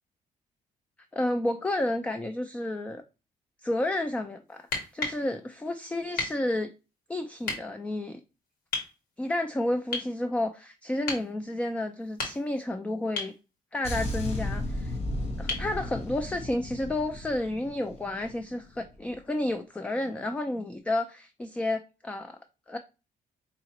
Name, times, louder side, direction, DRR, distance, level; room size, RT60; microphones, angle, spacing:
voice 1, 1.1-3.0 3.6-4.7 4.9-6.7 7.1-8.2 9.2-13.3 13.7-15.0 15.4-22.4 22.7-22.8, left 1 dB, 10° left, 0.3 m, -31 dB
sound 1, 4.6-5.2 6.2-6.4 7.4-7.6 8.7-8.9 9.9-10.1 11.1-11.3 12.0-12.6 13.2-13.4 15.5-15.7 17.6-17.7, left 3 dB, 90° left, 1.7 m, -33 dB
sound 2, 13.8-18.4 18.7-19.0, left 1 dB, 45° left, 1.2 m, -34 dB
5.0 x 2.8 x 2.9 m
cardioid pair, 135°, 15 cm